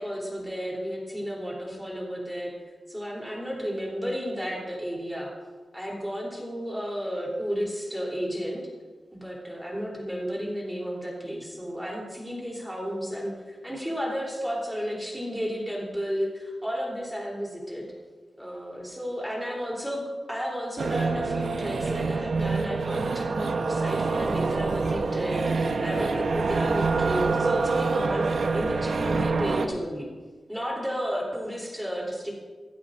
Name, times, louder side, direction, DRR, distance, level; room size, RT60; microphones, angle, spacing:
voice 1, 0.0-2.5 2.9-5.3 5.7-8.6 9.1-17.9 18.4-30.1 30.5-32.3, equal, 5° right, -3 dB, 3.4 m, -32 dB
sound 1, 20.8-29.7, right 4 dB, 65° right, 0.9 m, -26 dB
16.5 x 15.5 x 2.6 m, 1.4 s
wide cardioid pair, 170°, 0 cm